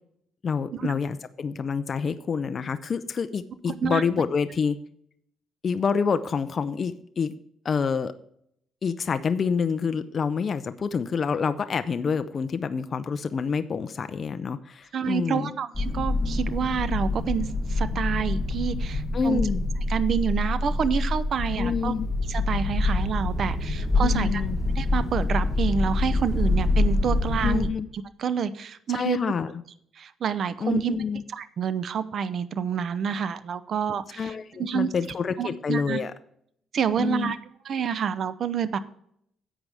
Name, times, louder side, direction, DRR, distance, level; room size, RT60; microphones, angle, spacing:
voice 1, 0.4-4.8 5.6-7.4 7.6-8.1 8.8-15.5 19.1-19.6 21.6-22.1 24.0-24.6 27.4-27.9 28.9-29.5 30.6-31.2 34.2-36.1 37.0-37.3, left 6 dB, 40° left, 10 dB, 0.5 m, -27 dB
voice 2, 3.7-4.0 14.9-19.4 19.9-21.9 22.3-24.4 24.8-27.7 28.2-29.2 30.0-31.0 31.3-34.3 34.6-34.9 35.4-36.0 36.7-37.4 37.6-38.8, right 7 dB, 50° right, 14 dB, 0.7 m, -28 dB
sound 1, 15.7-27.7, left 2 dB, 15° left, 1.2 m, -26 dB
11.0 x 7.8 x 3.5 m, 0.69 s
cardioid pair, 125°, 0 cm